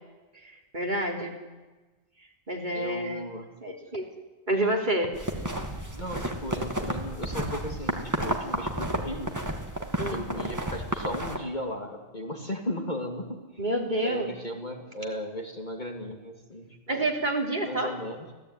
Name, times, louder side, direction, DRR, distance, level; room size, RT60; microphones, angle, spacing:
voice 1, 0.4-1.4 2.5-3.2 3.6-4.1 4.5-5.1 10.0-10.2 13.6-14.3 16.9-17.9, right 1 dB, 35° right, 1 dB, 3.7 m, -28 dB
voice 2, 2.7-3.5 5.4-5.5 5.9-9.3 10.1-13.6 14.0-17.1 17.6-18.3, equal, 35° left, 2 dB, 2.8 m, -36 dB
sound 1, 5.1-11.4, right 1 dB, 15° right, 2.5 m, -32 dB
25.5 x 16.5 x 9.8 m, 1.2 s
omnidirectional pair, 1.4 m